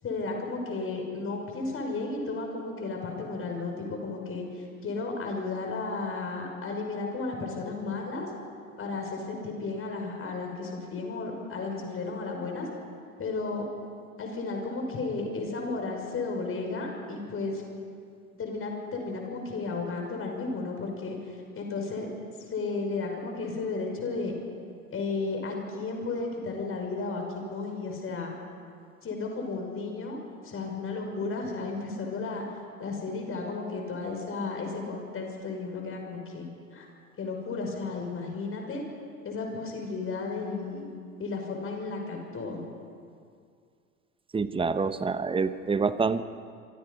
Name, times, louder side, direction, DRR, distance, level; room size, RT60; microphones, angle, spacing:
voice 1, 0.0-8.3 8.8-12.7 13.2-13.6 14.2-17.6 18.3-22.1 22.5-24.3 24.9-28.4 29.0-30.2 30.4-32.4 32.8-36.9 37.2-38.8 39.2-40.9 41.2-42.6, left 3 dB, 30° left, 2 dB, 6.0 m, -33 dB
voice 2, 44.3-46.2, right 4 dB, 10° right, 13 dB, 1.0 m, -27 dB
27.5 x 24.0 x 5.5 m, 2.3 s
figure-of-eight pair, 75°, 44 cm